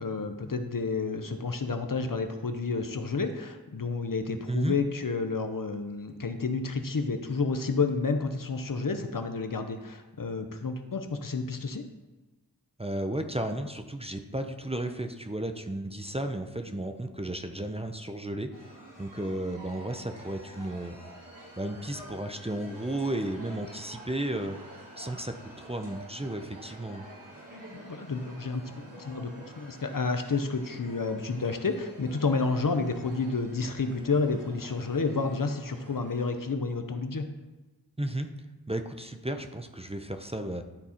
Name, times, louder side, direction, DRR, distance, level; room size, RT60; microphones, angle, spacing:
voice 1, 0.0-11.9 27.7-37.3, left 4 dB, 60° left, 7 dB, 0.8 m, -30 dB
voice 2, 12.8-18.7 19.0-21.0 21.6-27.0 38.0-38.3 38.7-40.6, right 1 dB, 15° right, 6 dB, 0.6 m, -34 dB
sound 1, 18.5-36.3, right 1 dB, 60° right, 2.8 m, -49 dB
12.0 x 4.2 x 4.3 m, 1.2 s
wide cardioid pair, 50°, 38 cm